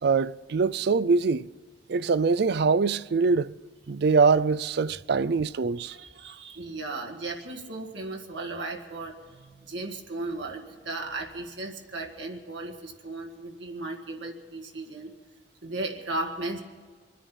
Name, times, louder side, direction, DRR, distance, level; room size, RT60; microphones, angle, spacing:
voice 1, 0.0-1.5 1.9-3.6 3.9-6.0, right 4 dB, 60° right, 0.4 m, -23 dB
voice 2, 5.8-15.1 15.6-16.6, right 2 dB, 80° right, 1.9 m, -36 dB
24.5 x 10.0 x 5.6 m
head